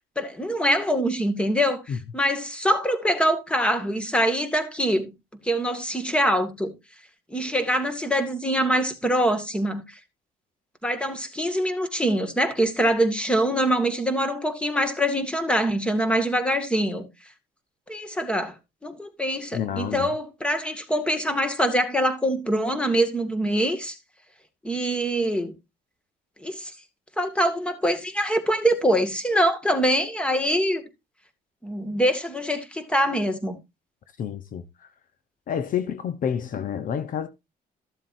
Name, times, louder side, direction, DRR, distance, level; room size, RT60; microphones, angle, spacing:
voice 1, 0.2-1.8 2.1-5.1 5.4-6.7 7.3-9.8 10.8-17.1 17.9-18.5 18.8-24.0 24.6-25.5 26.4-26.7 27.2-30.8 31.6-33.6, equal, 5° left, 2.2 m, -24 dB
voice 2, 19.5-20.1 34.2-34.9 35.5-37.3, left 8 dB, 55° left, 1.0 m, -29 dB
14.0 x 7.5 x 2.7 m
cardioid pair, 110°, 17 cm